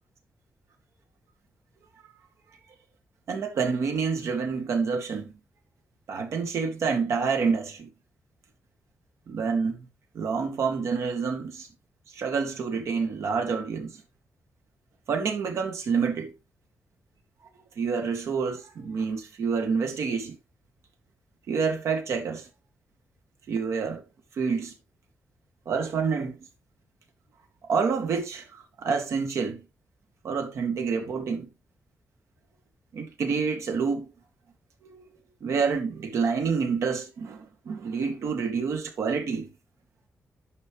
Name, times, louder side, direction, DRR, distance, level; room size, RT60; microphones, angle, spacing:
voice 1, 3.3-5.3 6.1-7.9 9.3-9.9 10.1-11.7 12.1-14.0 15.1-16.3 17.8-20.4 21.5-22.5 23.5-24.0 24.3-24.7 25.7-26.5 27.7-29.6 30.2-31.5 32.9-34.1 34.8-35.1 35.4-39.5, right 5 dB, 80° right, 2.1 m, -28 dB
11.0 x 5.4 x 3.0 m
wide cardioid pair, 145°, 5 cm